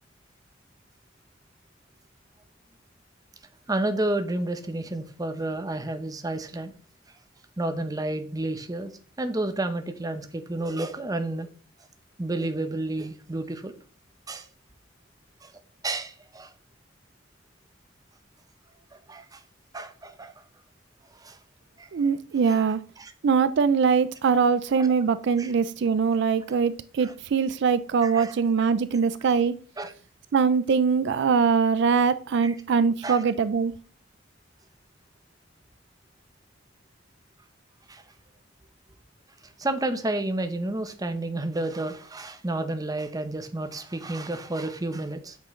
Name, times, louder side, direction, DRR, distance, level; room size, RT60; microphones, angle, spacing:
voice 1, 3.7-6.7 7.6-8.9 9.2-11.5 12.2-13.7 14.3-14.5 15.4-15.5 15.8-16.5 18.9-19.4 19.7-20.4 21.2-21.4 21.8-21.9 22.4-22.6 23.0-23.1 24.8-24.9 25.4-25.5 27.0-27.1 28.0-28.3 29.8-29.9 32.4-32.5 33.0-33.2 37.9-38.0 39.6-45.4, right 2 dB, 20° right, 0.7 m, -31 dB
voice 2, 21.9-22.8 23.2-29.5 30.3-33.7, right 5 dB, 65° right, 0.4 m, -22 dB
8.1 x 6.1 x 3.1 m
head